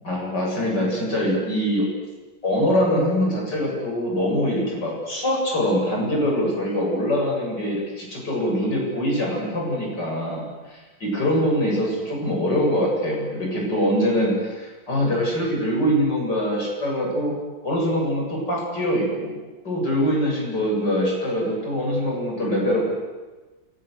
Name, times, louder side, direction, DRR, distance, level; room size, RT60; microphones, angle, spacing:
voice 1, 0.0-1.9 2.4-17.3 17.6-19.4 19.7-22.9, equal, 55° left, -1 dB, 8.6 m, -23 dB
29.0 x 23.5 x 8.3 m, 1.2 s
omnidirectional pair, 2.2 m